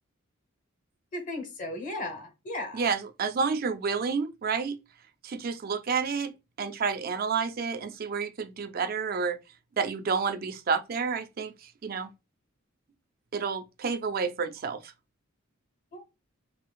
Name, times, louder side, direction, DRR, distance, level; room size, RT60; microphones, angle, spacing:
voice 1, 1.1-2.8 15.9-16.1, left 1 dB, 40° left, 1.0 m, -36 dB
voice 2, 2.7-4.8 5.2-6.3 6.6-9.4 9.8-12.1 13.3-14.9, right 5 dB, 45° right, 0.4 m, -30 dB
5.5 x 2.4 x 2.3 m
head